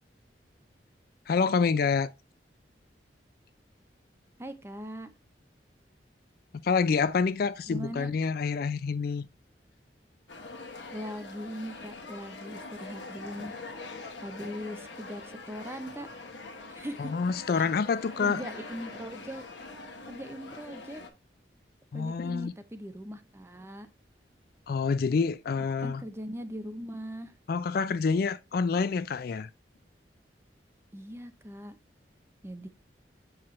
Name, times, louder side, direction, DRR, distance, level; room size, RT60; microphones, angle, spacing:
voice 1, 1.3-2.1 6.6-9.3 17.0-18.4 21.9-22.5 24.7-26.0 27.5-29.5, left 5 dB, 55° left, 0.4 m, -27 dB
voice 2, 4.4-5.1 7.7-8.1 10.9-13.6 14.2-16.1 16.8-17.1 17.6-17.7 18.2-19.4 20.1-21.0 21.9-23.9 25.8-27.4 30.9-31.8 32.4-32.7, equal, 15° right, 0.6 m, -40 dB
sound 1, 10.3-21.1, left 3 dB, 85° left, 1.2 m, -44 dB
7.2 x 4.8 x 3.1 m
head